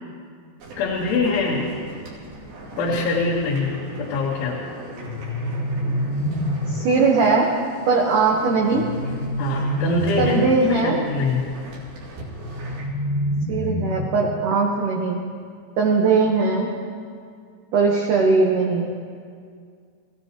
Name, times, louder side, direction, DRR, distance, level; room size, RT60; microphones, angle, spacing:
sound 1, 0.6-12.9, right 2 dB, 65° right, 4.7 m, -40 dB
voice 1, 0.8-1.7 2.8-4.6 9.4-10.4 10.7-11.5, left 3 dB, 75° left, -5 dB, 3.8 m, -23 dB
sound 2, 5.0-7.0 8.7-10.6 12.4-14.4, equal, 55° left, 2.5 m, -26 dB
voice 2, 6.7-7.5 7.9-8.9 10.2-11.0 13.5-15.2 15.8-16.7 17.7-18.9, right 4 dB, 85° right, 0 dB, 1.8 m, -19 dB
27.0 x 16.0 x 3.0 m, 2.2 s
omnidirectional pair, 5.5 m